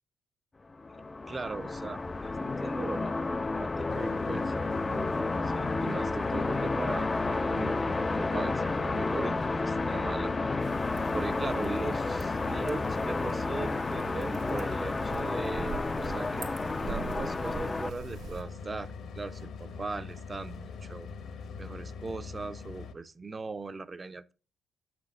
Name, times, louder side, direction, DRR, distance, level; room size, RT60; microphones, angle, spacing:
sound 1, 0.7-17.9, left 3 dB, 25° left, 0.4 m, -31 dB
voice 1, 0.9-10.3 11.1-16.5 16.9-21.1 21.6-24.3, right 3 dB, 25° right, 0.6 m, -39 dB
sound 2, 3.9-22.9, left 5 dB, 70° left, 1.1 m, -42 dB
sound 3, 10.6-18.4, right 6 dB, 90° right, 1.5 m, -44 dB
7.5 x 6.0 x 3.8 m
cardioid pair, 90°, 0 cm